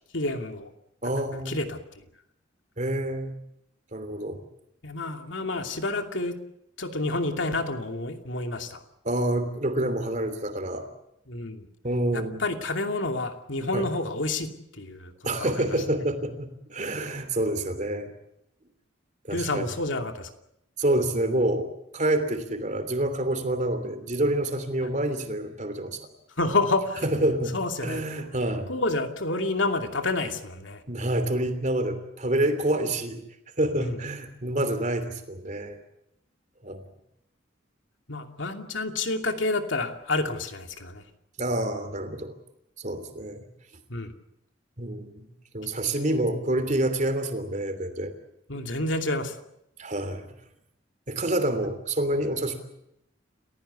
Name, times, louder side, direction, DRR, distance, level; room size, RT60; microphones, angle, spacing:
voice 1, 0.1-0.7 1.5-1.8 4.8-6.4 6.8-8.8 11.3-11.7 12.1-14.5 14.8-15.1 15.4-15.7 19.3-20.3 26.4-27.0 27.5-28.0 28.7-30.8 33.7-33.9 38.1-41.0 43.9-44.1 46.1-46.2 48.5-49.3, left 2 dB, 75° left, 5 dB, 2.7 m, -29 dB
voice 2, 1.0-1.6 2.8-3.3 3.9-4.4 9.0-10.9 11.8-12.4 13.7-13.9 15.2-18.1 19.3-19.7 20.8-21.7 21.9-26.0 27.0-28.7 30.9-33.2 33.6-35.8 36.6-36.8 41.4-42.4 42.8-43.5 44.8-45.3 45.5-48.1 49.8-50.3 51.1-52.6, right 1 dB, 40° right, 9 dB, 3.1 m, -27 dB
29.5 x 15.5 x 8.3 m, 0.80 s
head